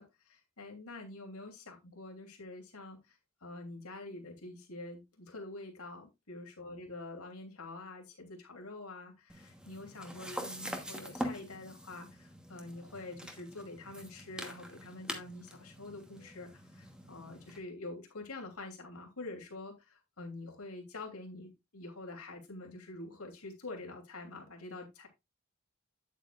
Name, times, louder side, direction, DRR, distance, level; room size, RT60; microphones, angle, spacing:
voice 1, 0.0-25.1, left 2 dB, 80° left, 3 dB, 3.0 m, -46 dB
sound 1, 9.3-17.6, equal, 5° right, 1.2 m, -44 dB
9.5 x 8.2 x 2.4 m, 0.22 s
head